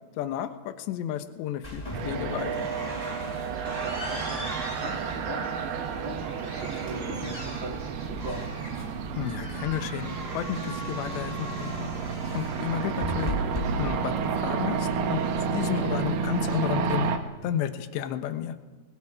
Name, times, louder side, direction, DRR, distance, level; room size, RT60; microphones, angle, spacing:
voice 1, 0.2-2.7 9.1-11.9 12.3-13.3 13.8-15.2 15.5-17.1 17.4-18.6, left 11 dB, 70° left, 9 dB, 3.0 m, -32 dB
sound 1, 1.6-15.7, equal, 10° left, 4.2 m, -38 dB
sound 2, 1.9-17.2, right 6 dB, 65° right, 2.9 m, -31 dB
voice 2, 3.3-8.4, right 1 dB, 40° right, -3 dB, 3.9 m, -40 dB
28.5 x 21.0 x 5.0 m, 1.3 s
omnidirectional pair, 5.9 m